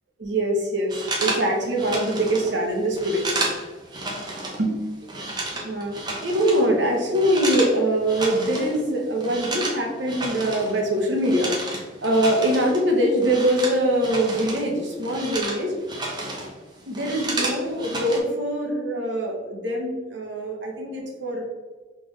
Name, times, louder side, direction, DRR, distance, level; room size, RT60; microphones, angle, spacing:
voice 1, 0.2-3.2 4.1-4.3 4.6-4.9 5.3-15.8 16.9-21.4, right 1 dB, 75° right, 0 dB, 1.0 m, -23 dB
sound 1, 0.9-4.6 4.9-7.8 8.0-8.8 9.0-14.7 14.9-16.5 16.8-18.2, right 2 dB, 25° right, 0.8 m, -31 dB
3.7 x 3.4 x 3.2 m, 1.3 s
head